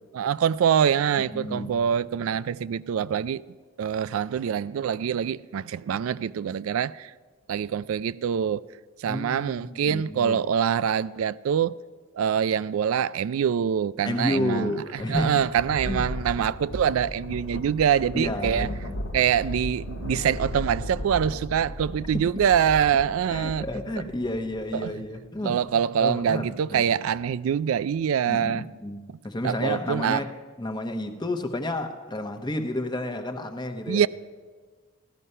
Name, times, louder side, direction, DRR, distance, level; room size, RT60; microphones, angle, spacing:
voice 1, 0.1-3.4 3.8-7.1 7.5-8.6 9.0-11.7 12.1-14.7 15.1-18.7 19.1-23.6 24.7-24.9 25.4-28.7 29.4-30.2 33.9-34.1, right 8 dB, 85° right, 0.3 m, -24 dB
voice 2, 1.2-1.8 9.1-10.4 14.0-15.3 15.9-16.1 18.1-19.0 22.3-22.4 23.3-25.6 26.0-26.8 28.3-30.3 30.6-34.0, left 1 dB, 20° left, 0.9 m, -31 dB
Thunder, 14.6-25.3, equal, 80° left, 1.3 m, -36 dB
15.5 x 12.5 x 5.5 m
head